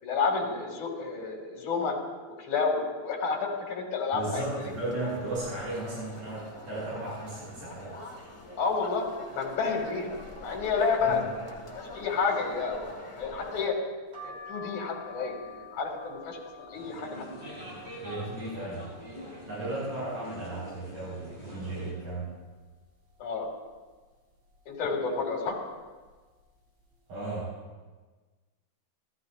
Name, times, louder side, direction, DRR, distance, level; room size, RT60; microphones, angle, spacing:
voice 1, 0.0-2.0 2.4-4.7 8.6-10.1 10.4-11.2 11.9-12.9 13.2-13.8 14.2-17.2 23.2-23.5 24.7-25.6, left 4 dB, 75° left, 0 dB, 3.7 m, -30 dB
voice 2, 4.1-7.9 11.0-11.5 18.0-18.9 19.5-22.3 27.1-27.5, right 2 dB, 80° right, -8 dB, 7.5 m, -35 dB
sound 1, 4.2-13.7, left 2 dB, 20° left, 0.8 m, -45 dB
sound 2, 14.1-19.8 20.3-21.0 21.4-21.5 21.7-22.8 23.3-23.7 24.4-24.8 25.6-25.8 26.1-26.3, left 4 dB, 50° right, 4.1 m, -49 dB
sound 3, 16.7-21.9, equal, 15° right, 4.0 m, -44 dB
29.5 x 13.5 x 2.5 m, 1.3 s
omnidirectional pair, 3.5 m